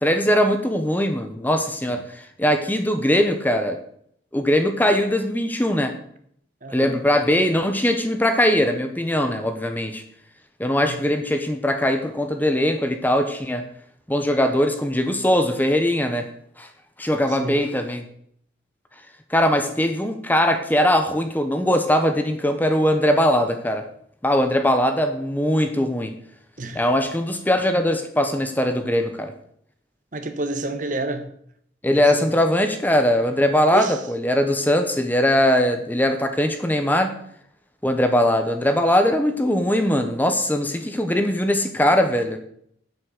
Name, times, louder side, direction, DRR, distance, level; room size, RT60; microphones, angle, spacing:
voice 1, 0.0-3.8 4.3-5.9 6.7-10.0 10.6-13.6 14.1-16.3 16.6-16.7 17.0-18.1 19.3-23.9 24.2-26.1 26.7-29.3 31.8-37.1 37.8-42.4, equal, 10° left, 0.9 m, -21 dB
voice 2, 6.6-7.0 10.8-11.0 17.4-17.6 26.6-26.9 30.1-31.3 31.9-32.1 33.7-34.0, right 2 dB, 45° right, 1.1 m, -30 dB
8.5 x 8.0 x 6.5 m
head